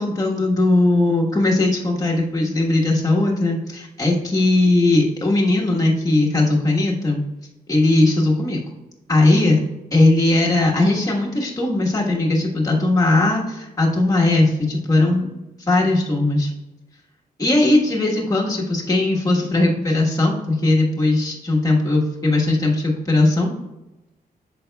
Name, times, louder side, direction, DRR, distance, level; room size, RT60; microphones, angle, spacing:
voice 1, 0.0-7.2 7.7-8.6 9.1-9.6 9.9-15.3 15.7-16.5 17.4-23.5, left 2 dB, 20° left, -3 dB, 1.3 m, -18 dB
8.5 x 7.0 x 2.3 m, 1.0 s
wide cardioid pair, 160°, 16 cm